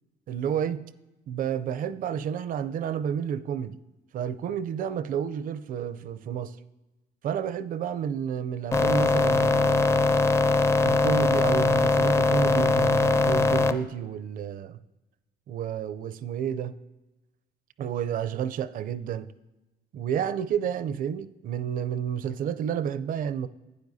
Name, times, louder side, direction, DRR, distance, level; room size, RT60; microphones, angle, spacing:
voice 1, 0.3-0.8 1.3-3.8 4.1-6.6 7.2-10.2 10.8-14.8 15.5-16.8 17.8-19.3 19.9-23.5, right 8 dB, 55° right, 15 dB, 0.5 m, -30 dB
sound 1, 8.7-13.7, left 3 dB, 15° left, 0.5 m, -21 dB
12.0 x 9.0 x 2.7 m, 1.0 s
cardioid pair, 110°, 17 cm